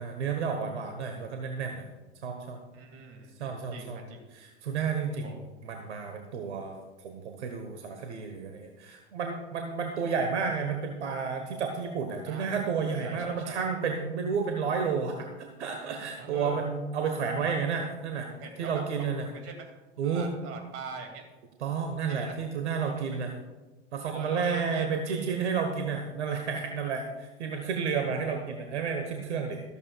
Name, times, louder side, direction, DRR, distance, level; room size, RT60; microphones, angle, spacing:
voice 1, 0.0-1.8 2.2-2.6 3.4-4.0 4.3-5.3 5.6-6.7 7.0-18.3 18.6-19.3 20.0-20.3 21.6-23.3 23.9-29.6, right 5 dB, 70° right, 4 dB, 1.3 m, -31 dB
voice 2, 2.7-4.3 5.1-5.5 12.3-12.5 13.0-13.6 16.2-16.6 18.3-19.7 20.0-21.2 22.1-22.4 22.8-23.3 24.0-25.3 27.6-27.7, right 4 dB, 40° right, 4 dB, 2.5 m, -43 dB
14.0 x 13.5 x 2.4 m, 1.2 s
figure-of-eight pair, 85°, 35 cm